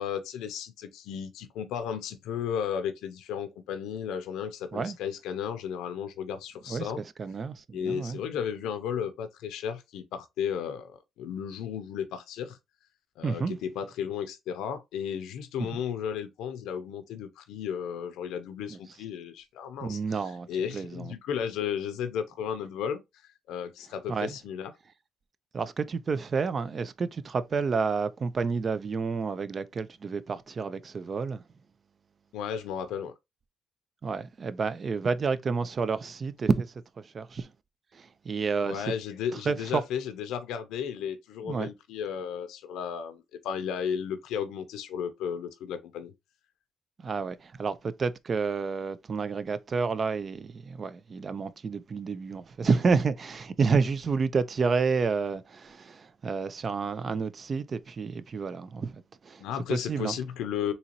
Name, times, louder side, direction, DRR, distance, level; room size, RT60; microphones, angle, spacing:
voice 1, 0.0-7.0 7.7-12.6 13.2-20.2 20.5-23.0 23.5-24.7 32.3-33.1 38.6-46.1 59.4-60.7, left 8 dB, 90° left, 0.5 m, -34 dB
voice 2, 6.7-8.2 13.2-13.6 15.6-15.7 18.7-18.8 19.8-20.5 20.7-21.1 24.1-24.4 25.5-31.4 34.0-37.5 37.9-38.9 39.5-39.8 41.4-41.7 47.0-59.4 59.7-60.2, right 5 dB, 40° right, 0.4 m, -30 dB
3.9 x 2.8 x 2.9 m
cardioid pair, 90°, 0 cm